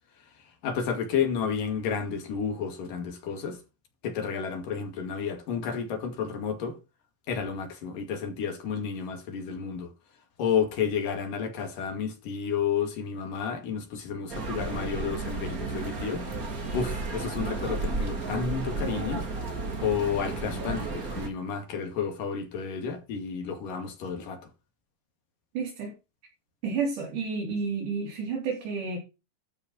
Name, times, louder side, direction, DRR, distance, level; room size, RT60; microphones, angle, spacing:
voice 1, 0.6-3.6 4.0-6.8 7.3-9.9 10.4-16.2 16.7-19.2 19.8-24.4, left 6 dB, 75° left, 3.9 m, -31 dB
sound 1, 14.3-21.3, right 3 dB, 30° right, 2.3 m, -33 dB
voice 2, 25.5-25.9 26.6-29.0, right 5 dB, 70° right, 4.7 m, -30 dB
12.5 x 5.3 x 6.2 m
omnidirectional pair, 3.8 m